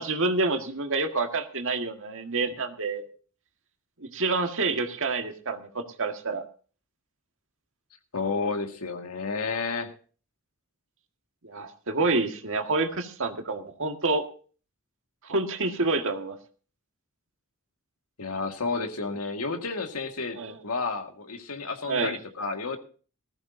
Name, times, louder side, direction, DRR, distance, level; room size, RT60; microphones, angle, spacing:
voice 1, 0.0-3.0 4.0-6.4 11.4-14.2 15.2-16.4 20.3-20.6 21.9-22.2, right 3 dB, 60° right, 5 dB, 1.8 m, -28 dB
voice 2, 8.1-9.9 18.2-22.8, left 4 dB, 85° left, 5 dB, 1.9 m, -31 dB
19.0 x 14.0 x 2.7 m, 0.39 s
head